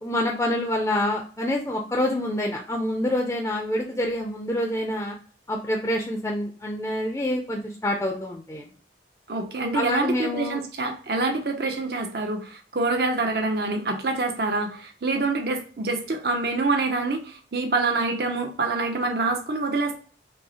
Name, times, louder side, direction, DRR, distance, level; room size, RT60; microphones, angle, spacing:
voice 1, 0.0-5.2 5.5-8.6 9.7-10.6, left 1 dB, 15° left, 1 dB, 0.4 m, -27 dB
voice 2, 9.3-20.0, right 3 dB, 55° right, 4 dB, 0.6 m, -26 dB
5.3 x 2.0 x 2.8 m, 0.41 s
head